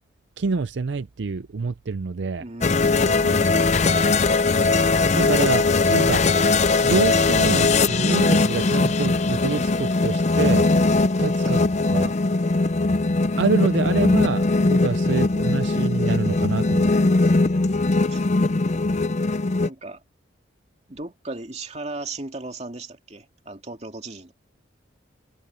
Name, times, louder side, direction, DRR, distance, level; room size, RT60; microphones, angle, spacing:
voice 1, 0.4-2.4 5.1-5.7 5.9-6.2 6.8-10.7 11.2-11.6 11.9-12.1 13.4-17.1, right 4 dB, 70° right, 0.5 m, -26 dB
voice 2, 2.4-4.0 11.4-11.7 18.1-18.2 19.6-20.0 20.9-24.3, right 2 dB, 35° right, 2.5 m, -37 dB
sound 1, 2.6-19.7, left 3 dB, 35° left, 0.5 m, -20 dB
head